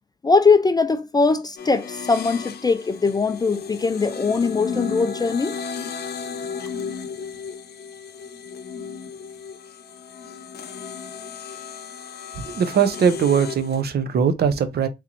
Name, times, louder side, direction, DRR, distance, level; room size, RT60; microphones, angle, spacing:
voice 1, 0.2-5.6, left 4 dB, 20° left, 0.4 m, -20 dB
sound 1, 1.6-13.8, left 6 dB, 55° left, 0.7 m, -34 dB
voice 2, 12.4-14.9, right 7 dB, 55° right, 0.7 m, -20 dB
3.5 x 3.1 x 2.8 m
cardioid pair, 90°, 20 cm